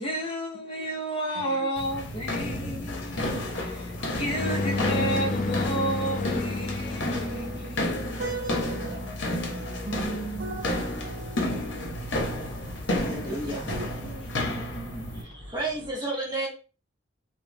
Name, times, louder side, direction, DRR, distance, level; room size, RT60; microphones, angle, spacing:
voice 1, 0.0-8.0 12.9-15.2, right 1 dB, 30° left, 0.7 m, -33 dB
voice 2, 0.6-1.0 1.3-1.7 2.1-4.2 6.5-14.4, right 3 dB, 55° right, 0.6 m, -40 dB
sound 1, 1.8-15.2, left 1 dB, 70° left, 0.7 m, -32 dB
sound 2, 2.3-7.9, left 2 dB, 45° left, 0.3 m, -32 dB
sound 3, 10.5-15.9, equal, 90° right, 0.9 m, -44 dB
voice 3, 12.9-13.7 15.1-16.5, right 2 dB, 25° right, 0.8 m, -32 dB
2.3 x 2.1 x 3.3 m
head